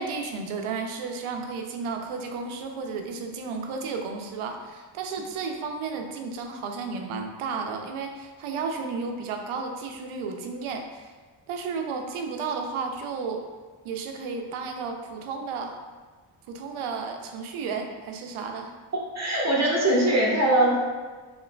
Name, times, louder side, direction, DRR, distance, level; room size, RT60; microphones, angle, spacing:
voice 1, 0.0-11.1 11.5-13.4 13.8-15.8 16.5-18.7, right 4 dB, 90° right, 4 dB, 0.6 m, -33 dB
voice 2, 19.1-20.8, right 1 dB, 35° right, -5 dB, 1.2 m, -21 dB
4.4 x 3.0 x 2.2 m, 1.4 s
cardioid pair, 80°, 48 cm